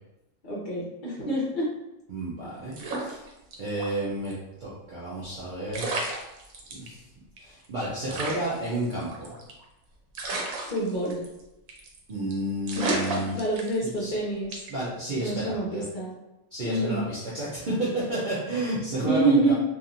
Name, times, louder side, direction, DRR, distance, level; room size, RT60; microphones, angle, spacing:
voice 1, 0.4-1.7 10.6-11.2 12.7-14.5 15.2-16.1 16.6-17.0 19.0-19.5, right 2 dB, 50° left, -5 dB, 0.6 m, -27 dB
voice 2, 2.1-3.2 3.6-4.3 4.6-5.9 6.7-7.0 7.4-9.3 12.1-13.3 13.8-14.2 14.7-15.8 16.5-19.5, right 1 dB, 50° right, -8 dB, 0.6 m, -31 dB
sound 1, 2.7-3.9 4.2-4.3 5.4-5.5 5.7-6.9 7.4-7.5 7.6-7.7 8.1-9.6 10.1-11.4 11.7-12.0 12.3-12.4 12.7-14.0 14.5-14.8, right 2 dB, 90° right, 1.1 m, -33 dB
2.9 x 2.5 x 2.5 m, 0.93 s
omnidirectional pair, 1.4 m